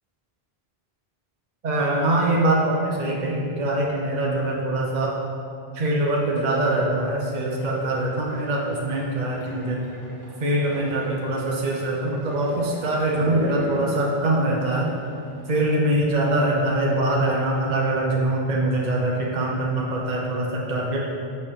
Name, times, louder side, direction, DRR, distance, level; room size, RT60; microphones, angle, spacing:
voice 1, 1.6-5.1 5.7-9.8 10.4-14.9 15.5-21.0, right 1 dB, 45° right, -3 dB, 1.0 m, -23 dB
sound 1, 7.2-15.8, left 1 dB, 75° left, 2.1 m, -37 dB
6.7 x 6.6 x 3.7 m, 2.5 s
omnidirectional pair, 1.0 m